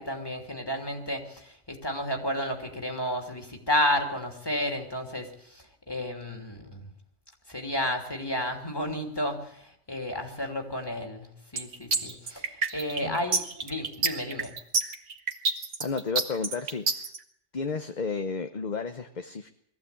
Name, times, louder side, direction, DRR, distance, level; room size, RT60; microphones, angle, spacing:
voice 1, 0.0-6.8 7.5-14.5, left 1 dB, 20° left, 3 dB, 3.2 m, -32 dB
sound 1, 11.6-17.2, right 4 dB, 75° right, 1.9 m, -27 dB
voice 2, 15.8-17.1 17.5-19.5, left 5 dB, 40° left, 8 dB, 1.0 m, -32 dB
22.0 x 14.5 x 8.6 m, 0.72 s
omnidirectional pair, 1.2 m